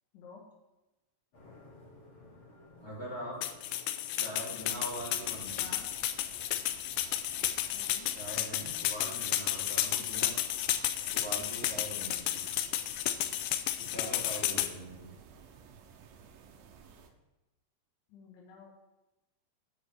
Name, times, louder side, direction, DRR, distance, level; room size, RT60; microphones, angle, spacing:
sound 1, 1.3-7.1, left 2 dB, 35° left, 2.5 m, -57 dB
voice 1, 2.8-3.4 4.1-5.7 8.1-10.3 11.1-12.4 13.8-15.1, right 1 dB, 10° left, -7 dB, 2.0 m, -42 dB
sound 2, 3.4-14.7, left 13 dB, 90° left, 2.8 m, -32 dB
sound 3, 4.6-17.1, right 6 dB, 75° right, 2.2 m, -54 dB
voice 2, 5.5-5.9 7.7-8.1 13.9-14.3 18.1-18.7, left 6 dB, 75° left, -3 dB, 3.4 m, -51 dB
10.0 x 4.4 x 6.5 m, 1.0 s
omnidirectional pair, 5.0 m